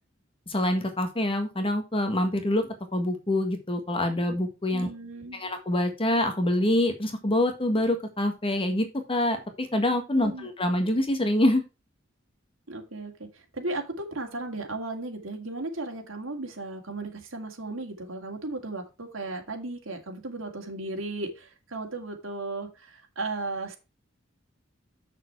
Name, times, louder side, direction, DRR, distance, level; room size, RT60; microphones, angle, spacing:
voice 1, 0.5-4.9 5.3-11.6, left 1 dB, 30° left, 1.6 m, -26 dB
voice 2, 4.7-5.4 10.2-10.5 12.7-23.8, right 2 dB, 75° right, 2.4 m, -35 dB
7.2 x 6.7 x 4.6 m
head